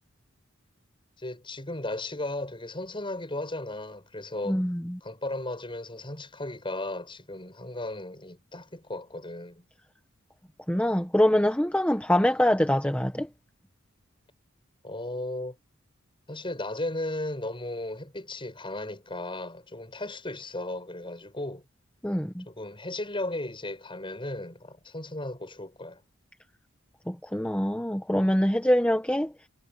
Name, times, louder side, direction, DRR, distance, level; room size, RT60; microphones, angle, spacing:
voice 1, 1.2-4.6 5.0-9.7 14.8-15.6 16.3-21.6 22.5-26.0, left 2 dB, 25° left, 7.5 m, -35 dB
voice 2, 4.5-5.0 10.7-13.3 22.0-22.4 27.1-29.3, left 1 dB, 5° left, 1.3 m, -24 dB
head